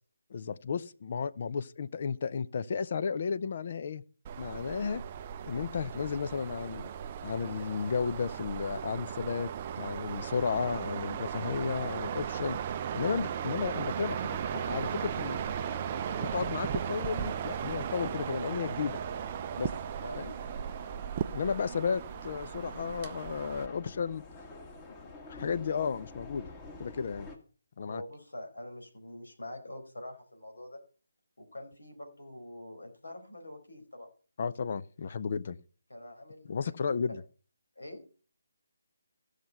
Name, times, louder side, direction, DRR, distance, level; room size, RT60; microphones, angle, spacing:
voice 1, 0.3-4.0 4.4-5.0 5.5-6.9 7.2-9.5 9.8-15.4 16.2-19.0 19.6-19.7 20.2-20.3 21.3-24.2 25.3-26.5 26.8-27.3 27.8-28.0 34.4-35.6 36.5-37.2, left 6 dB, 45° left, 0.6 m, -33 dB
sound 1, 4.2-23.7, right 9 dB, 30° right, 0.5 m, -36 dB
sound 2, 14.1-27.4, left 3 dB, 15° left, 1.7 m, -49 dB
voice 2, 27.8-30.8 31.4-34.1 35.9-37.2 37.8-38.0, left 1 dB, 75° left, 4.6 m, -45 dB
15.5 x 6.6 x 5.7 m
figure-of-eight pair, 150°, 0 cm